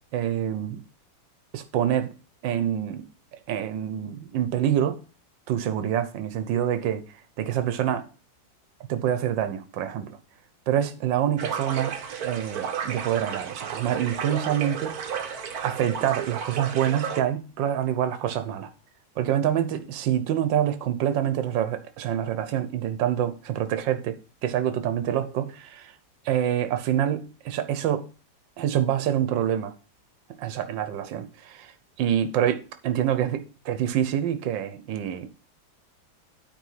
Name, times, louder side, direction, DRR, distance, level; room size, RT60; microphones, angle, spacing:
voice 1, 0.1-0.8 1.5-2.1 2.4-3.0 3.5-5.0 5.5-8.0 8.9-10.2 10.7-12.0 12.2-14.9 15.6-18.7 19.2-24.1 24.4-25.9 26.2-28.0 28.6-29.7 30.4-31.7 32.0-35.3, right 10 dB, 70° right, 1.6 m, -26 dB
sound 1, 11.4-17.2, right 7 dB, 55° right, 1.4 m, -33 dB
9.3 x 4.6 x 5.7 m
omnidirectional pair, 2.1 m